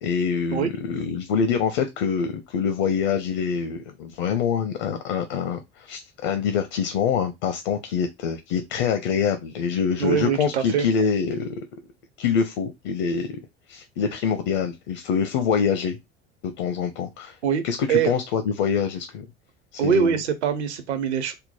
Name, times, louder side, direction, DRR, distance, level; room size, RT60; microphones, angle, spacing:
voice 1, 0.0-11.6 12.2-13.4 13.7-16.0 16.4-17.4 17.6-19.3 19.7-20.2, left 6 dB, 55° left, 0.8 m, -25 dB
voice 2, 10.0-10.9 17.4-17.6 17.9-18.1 19.8-21.3, right 8 dB, 70° right, 0.9 m, -23 dB
3.7 x 2.1 x 4.2 m
figure-of-eight pair, 70°, 35 cm